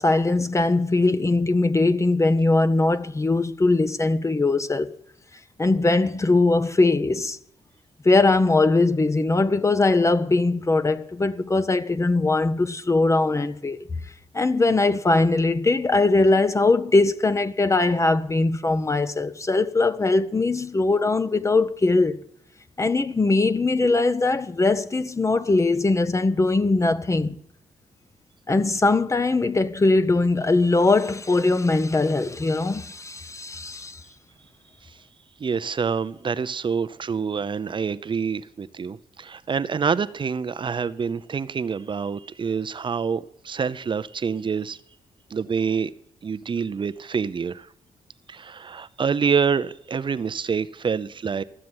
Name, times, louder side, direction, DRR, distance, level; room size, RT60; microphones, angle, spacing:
voice 1, 0.0-4.9 5.6-7.4 8.0-13.8 14.3-22.2 22.8-27.4 28.5-34.0, left 3 dB, 25° left, 0.8 m, -21 dB
voice 2, 35.4-44.8 45.3-45.9 46.2-47.7 48.3-51.4, right 6 dB, 40° right, 0.6 m, -26 dB
13.5 x 7.5 x 9.7 m
cardioid pair, 95°, 13 cm